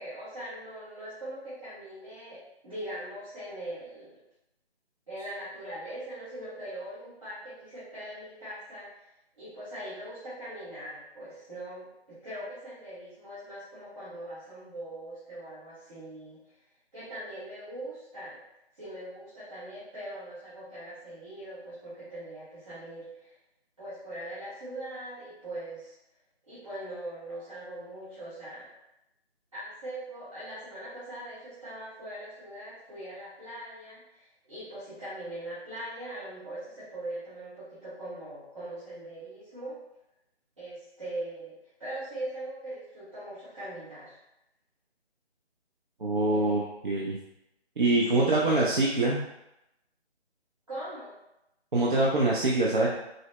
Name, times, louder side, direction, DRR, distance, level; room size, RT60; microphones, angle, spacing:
voice 1, 0.0-4.2 5.1-8.9 9.4-16.4 16.9-18.4 18.8-23.3 23.8-25.9 26.4-28.7 29.5-39.8 40.6-44.2 46.3-46.7 48.0-48.6 50.7-51.2, right 1 dB, 30° right, -14 dB, 1.1 m, -41 dB
voice 2, 46.0-47.2 47.8-49.2 51.7-52.9, right 2 dB, 50° right, -4 dB, 0.5 m, -24 dB
3.9 x 2.0 x 3.0 m, 0.88 s
figure-of-eight pair, 170°, 32 cm